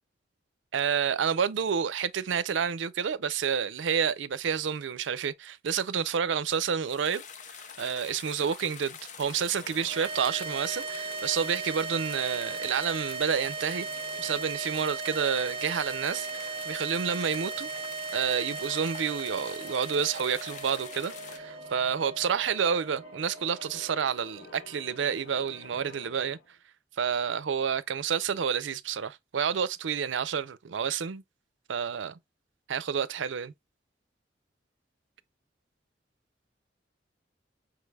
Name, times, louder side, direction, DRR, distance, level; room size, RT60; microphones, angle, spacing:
voice 1, 0.7-13.9 14.2-17.7 18.1-26.4 27.0-31.2 31.7-32.2 32.7-33.5, right 7 dB, 90° right, 0.5 m, -29 dB
sound 1, 6.8-21.4, left 7 dB, 40° left, 0.5 m, -45 dB
sound 2, 9.1-26.6, left 2 dB, 80° left, 1.1 m, -51 dB
sound 3, 9.9-24.3, right 4 dB, 30° right, 0.4 m, -38 dB
6.0 x 3.3 x 2.3 m
head